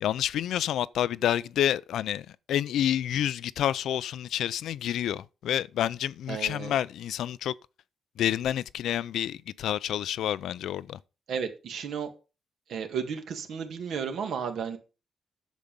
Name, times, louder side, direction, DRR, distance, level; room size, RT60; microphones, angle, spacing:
voice 1, 0.0-7.5 8.2-11.0, left 11 dB, 80° left, 0.5 m, -29 dB
voice 2, 6.3-6.8 11.3-12.1 12.7-14.8, right 6 dB, 65° right, 2.0 m, -33 dB
10.5 x 7.3 x 5.2 m
wide cardioid pair, 165°, 0 cm